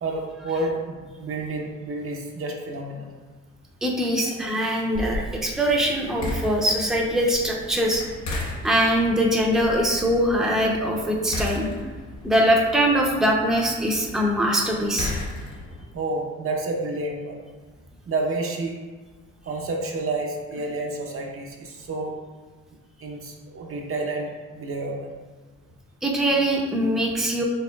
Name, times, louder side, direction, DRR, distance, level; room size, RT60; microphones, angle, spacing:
voice 1, 0.0-3.1 4.2-4.4 15.9-17.4 18.1-18.8 19.4-22.2 23.0-25.1, right 2 dB, 45° right, 1 dB, 0.7 m, -30 dB
voice 2, 3.8-8.0 8.3-11.7 12.2-15.1 26.0-27.4, equal, ahead, -1 dB, 0.6 m, -22 dB
sound 1, 4.9-15.8, left 1 dB, 85° left, 1.1 m, -35 dB
5.3 x 3.5 x 2.3 m, 1.4 s
cardioid pair, 90°, 30 cm